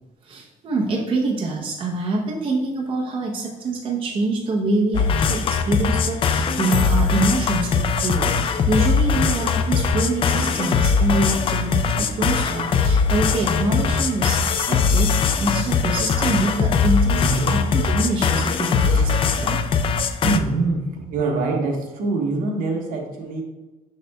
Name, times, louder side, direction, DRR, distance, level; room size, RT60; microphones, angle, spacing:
voice 1, 0.2-19.6, right 2 dB, 35° right, -2 dB, 0.8 m, -25 dB
sound 1, 4.9-20.4, left 5 dB, 35° left, 0.4 m, -21 dB
voice 2, 17.2-17.5 18.8-19.1 20.2-23.4, right 3 dB, 70° right, 1 dB, 1.2 m, -24 dB
6.5 x 6.3 x 2.3 m, 1.1 s
cardioid pair, 160°, 15 cm